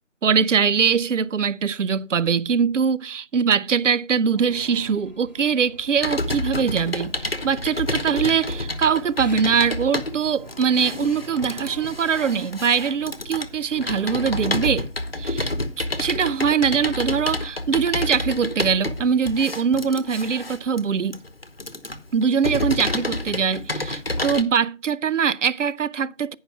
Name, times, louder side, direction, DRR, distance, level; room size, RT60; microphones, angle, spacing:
voice 1, 0.2-14.9 15.2-21.2 22.1-26.3, right 6 dB, 75° right, 0.5 m, -22 dB
sound 1, 4.3-14.8, equal, 35° right, 0.8 m, -44 dB
Computer keyboard, 6.0-24.4, left 2 dB, 50° left, 1.0 m, -29 dB
9.5 x 5.5 x 4.6 m
figure-of-eight pair, 175°, 38 cm